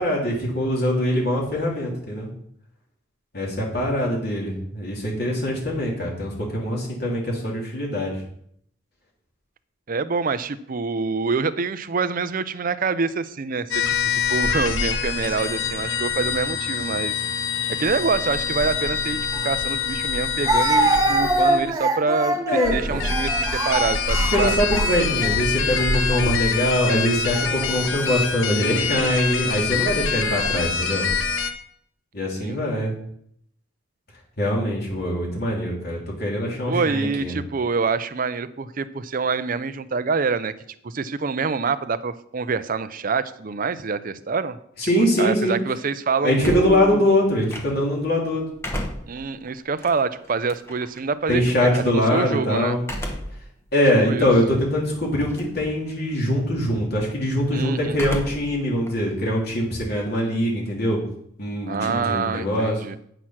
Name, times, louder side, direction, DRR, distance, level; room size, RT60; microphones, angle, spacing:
voice 1, 0.0-2.3 3.3-8.2 22.5-23.0 24.3-31.0 32.1-32.9 34.4-37.3 44.8-45.6 46.2-48.4 51.3-52.8 53.7-61.0 61.4-62.8, equal, 55° left, -3 dB, 3.3 m, -23 dB
voice 2, 9.9-17.1 17.8-19.2 19.4-22.4 22.7-24.6 28.6-29.1 32.4-32.6 36.7-40.5 40.8-44.6 45.2-47.1 49.1-52.8 54.1-54.3 57.5-58.0 61.7-63.0, right 4 dB, 45° right, 13 dB, 0.6 m, -26 dB
sound 1, 13.7-21.7 22.6-31.5, left 5 dB, 80° left, 0.9 m, -25 dB
Speech, 19.3-19.4 20.5-25.3 26.1-26.4 27.3-27.9, right 2 dB, 20° right, 0.9 m, -24 dB
sound 2, 46.4-48.0 48.4-51.0 52.8-53.5 54.0-54.1 55.1-55.6 55.9-56.3 57.9-58.6 58.9-60.3, equal, 15° left, 1.2 m, -34 dB
9.0 x 6.4 x 5.8 m, 0.69 s
head